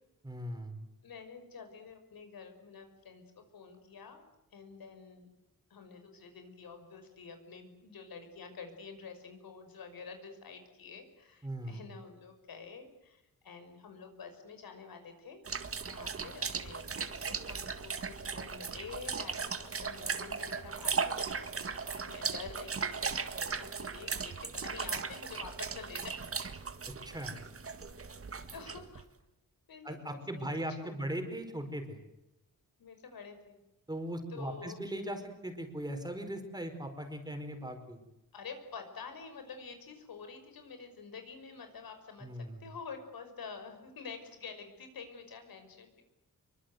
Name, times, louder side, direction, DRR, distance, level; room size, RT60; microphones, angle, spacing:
voice 1, 0.2-0.8 11.4-11.8 27.0-27.4 29.8-32.0 33.9-38.0 42.2-42.6, right 1 dB, 10° right, 5 dB, 4.7 m, -39 dB
voice 2, 1.0-3.2 3.5-4.2 4.5-5.3 5.7-15.4 15.8-26.2 28.5-29.1 29.7-30.5 30.8-31.0 32.8-33.6 34.3-34.8 38.3-46.0, left 5 dB, 80° left, 7 dB, 5.6 m, -48 dB
sound 1, 15.4-29.0, right 5 dB, 40° right, 1.8 m, -37 dB
26.0 x 24.0 x 8.0 m, 0.92 s
wide cardioid pair, 135°, 35 cm